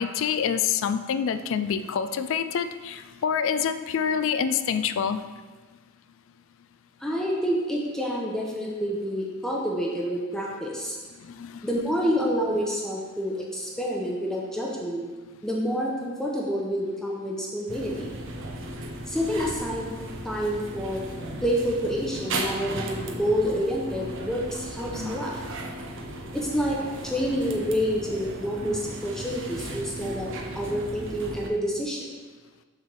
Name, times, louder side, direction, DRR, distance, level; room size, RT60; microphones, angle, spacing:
voice 1, 0.0-5.2 11.3-11.7, left 7 dB, 65° left, 11 dB, 0.4 m, -26 dB
voice 2, 7.0-11.0 11.6-15.0 15.4-18.1 19.1-19.9 20.2-21.0 21.4-25.3 26.3-32.0, equal, 5° left, -3 dB, 0.8 m, -28 dB
sound 1, 17.7-31.5, right 1 dB, 65° right, 0.8 m, -36 dB
6.5 x 3.4 x 6.1 m, 1.3 s
head